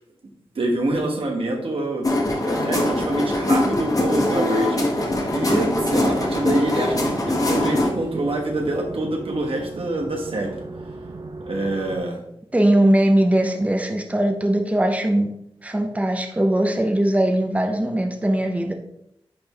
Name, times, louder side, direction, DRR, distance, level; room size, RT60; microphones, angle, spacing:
voice 1, 0.5-2.1 2.4-4.9 5.3-10.6 11.5-12.2, right 2 dB, 70° right, 1 dB, 1.2 m, -26 dB
sound 1, 2.0-7.9, left 1 dB, 40° left, 1.4 m, -22 dB
sound 2, 4.9-12.0, right 3 dB, 55° right, 0.6 m, -37 dB
voice 2, 12.5-15.3 15.6-18.7, right 1 dB, 15° right, 4 dB, 0.8 m, -20 dB
9.8 x 3.4 x 3.1 m, 0.76 s
wide cardioid pair, 65°, 10 cm